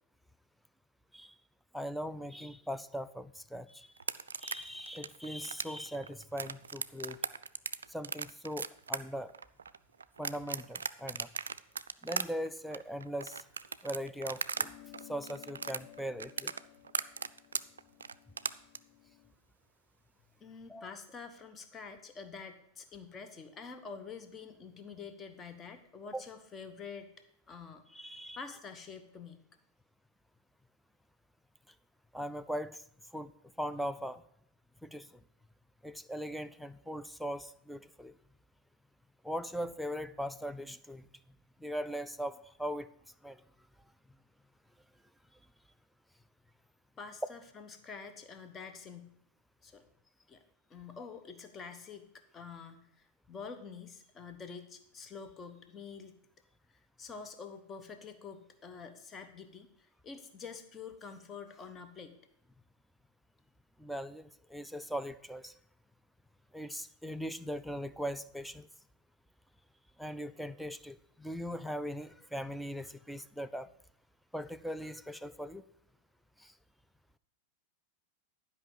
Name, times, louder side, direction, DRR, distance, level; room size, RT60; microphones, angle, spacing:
voice 1, 1.7-3.9 4.4-7.2 7.9-9.3 10.2-11.3 12.0-13.4 13.8-14.7 15.1-16.5 20.7-20.9 26.1-26.2 27.9-28.4 32.1-32.8 33.1-33.3 33.6-34.2 34.8-35.2 35.8-38.2 39.2-41.1 41.6-42.9 43.2-43.4 63.8-65.5 66.5-68.7 70.0-73.7 74.3-75.6 76.4-76.5, equal, ahead, 11 dB, 0.4 m, -40 dB
sound 1, 4.0-14.7 14.9-18.8, right 6 dB, 70° right, 0.3 m, -37 dB
sound 2, 14.5-19.3, left 18 dB, 45° left, 0.6 m, -56 dB
voice 2, 20.4-27.1 27.5-27.8 28.4-29.4 47.0-49.1 49.6-49.8 50.3-50.4 50.7-52.1 52.3-56.2 57.0-62.2, left 5 dB, 20° left, 8 dB, 1.1 m, -47 dB
11.0 x 5.3 x 7.4 m, 0.70 s
figure-of-eight pair, 90°, 0 cm